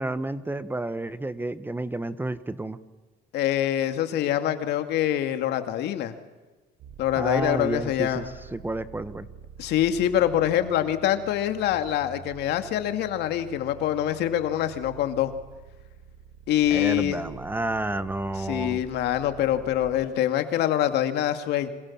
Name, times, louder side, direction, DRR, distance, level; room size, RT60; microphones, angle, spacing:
voice 1, 0.0-2.8 7.1-9.3 16.7-18.8, right 2 dB, 10° right, 13 dB, 1.3 m, -30 dB
voice 2, 3.3-6.2 7.0-8.2 9.6-15.3 16.5-17.2 18.5-21.7, left 11 dB, 80° left, 8 dB, 2.4 m, -25 dB
sound 1, 6.8-20.1, right 7 dB, 85° right, 3.5 m, -46 dB
27.0 x 26.0 x 7.4 m, 1.2 s
cardioid pair, 110°, 17 cm